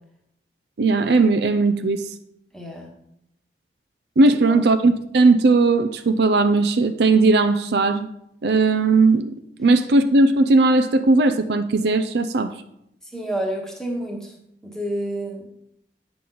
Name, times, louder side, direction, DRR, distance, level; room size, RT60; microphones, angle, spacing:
voice 1, 0.8-2.0 4.2-8.1 8.4-9.3 9.6-12.5, right 3 dB, 70° right, 10 dB, 0.5 m, -17 dB
voice 2, 2.5-2.9 4.5-4.6 13.0-14.3 14.6-15.4, right 1 dB, 5° left, 0 dB, 1.2 m, -29 dB
8.4 x 6.0 x 3.9 m, 0.76 s
head